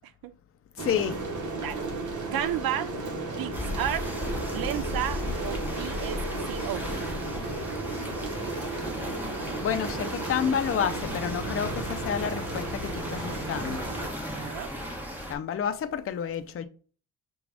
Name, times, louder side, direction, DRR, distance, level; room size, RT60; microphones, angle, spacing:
voice 1, 0.8-1.2 9.6-13.8 15.3-16.7, left 8 dB, 40° left, 0.5 m, -30 dB
sound 1, 0.8-14.1, right 2 dB, 55° right, 1.3 m, -34 dB
voice 2, 2.3-2.9 3.4-4.1 4.5-6.2 6.5-6.9 14.3-14.7, right 11 dB, 75° right, 0.5 m, -32 dB
sound 2, 3.5-15.3, left 1 dB, 5° right, 1.1 m, -36 dB
6.1 x 2.4 x 3.3 m
cardioid pair, 110°, 36 cm